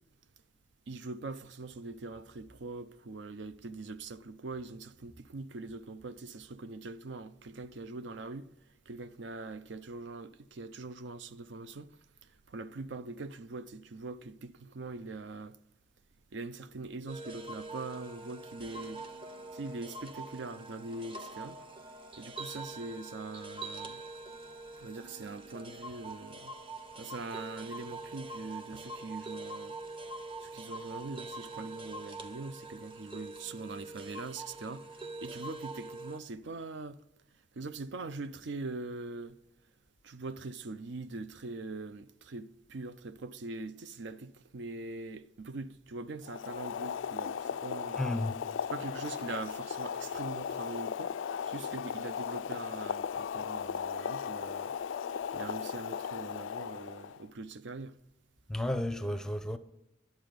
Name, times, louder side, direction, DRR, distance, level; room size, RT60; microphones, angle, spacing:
voice 1, 0.9-8.5 8.9-12.0 12.5-15.6 16.3-19.0 19.5-21.7 22.2-24.0 24.8-26.5 27.0-29.8 30.4-37.0 37.5-39.4 40.0-48.0 48.7-54.7 55.3-58.0, right 3 dB, 70° right, 0.5 m, -42 dB
sound 1, 17.1-36.2, right 2 dB, 30° right, 0.8 m, -44 dB
Boiling, 46.2-57.2, left 7 dB, 85° left, 0.3 m, -37 dB
voice 2, 48.0-48.4 58.5-59.6, left 1 dB, 5° left, 0.6 m, -32 dB
11.0 x 7.9 x 5.1 m
head